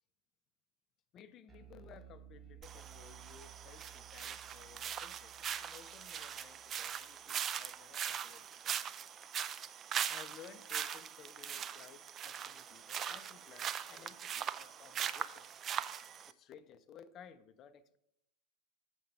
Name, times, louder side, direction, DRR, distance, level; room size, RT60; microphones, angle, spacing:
voice 1, 1.1-8.8 10.1-15.5 16.3-18.0, left 8 dB, 30° left, 0.5 m, -57 dB
Bass guitar, 1.5-7.9, right 11 dB, 10° right, 1.2 m, -58 dB
sound 1, 2.6-16.3, right 8 dB, 25° right, 0.3 m, -41 dB
7.2 x 5.6 x 5.4 m
figure-of-eight pair, 90°, 0 cm